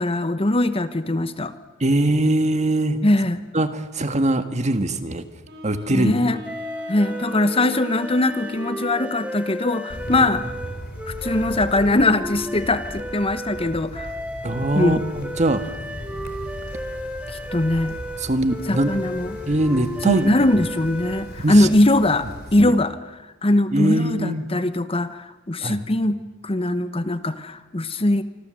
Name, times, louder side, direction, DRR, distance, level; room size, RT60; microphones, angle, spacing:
voice 1, 0.0-1.5 3.0-3.4 5.9-6.4 6.9-10.4 11.1-14.1 14.7-15.0 17.3-17.9 18.7-19.4 20.0-23.0 23.4-26.2 26.4-28.2, left 1 dB, 30° left, 12 dB, 1.0 m, -21 dB
voice 2, 1.8-3.0 3.5-5.3 5.6-6.1 14.4-15.6 18.2-18.9 19.5-20.3 21.4-21.7 22.6-22.7 23.7-24.5 25.6-25.8, right 1 dB, 35° right, 9 dB, 1.7 m, -21 dB
Wind instrument woodwind instrument, 5.4-9.6, left 2 dB, 55° right, 7.7 m, -40 dB
sound 1, 6.4-21.5, equal, 5° right, 2.3 m, -34 dB
Wind, 9.9-22.6, equal, 55° left, 4.3 m, -38 dB
26.5 x 25.5 x 7.7 m, 1.1 s
head